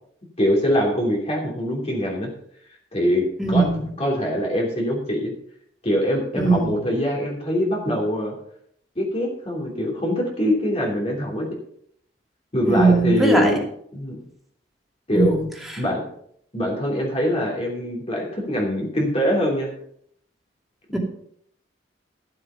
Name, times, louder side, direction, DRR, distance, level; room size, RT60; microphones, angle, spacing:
voice 1, 0.4-2.3 2.9-3.2 3.5-3.6 4.0-5.3 5.8-8.3 8.9-11.5 12.5-13.6 13.9-14.2 15.1-15.4 15.8-16.1 16.5-19.7, equal, 35° left, -2 dB, 3.2 m, -23 dB
voice 2, 3.4-3.9 6.4-6.8 12.7-13.5 15.1-15.8 20.9-21.0, right 3 dB, ahead, -1 dB, 2.7 m, -20 dB
13.0 x 7.8 x 5.7 m, 0.68 s
head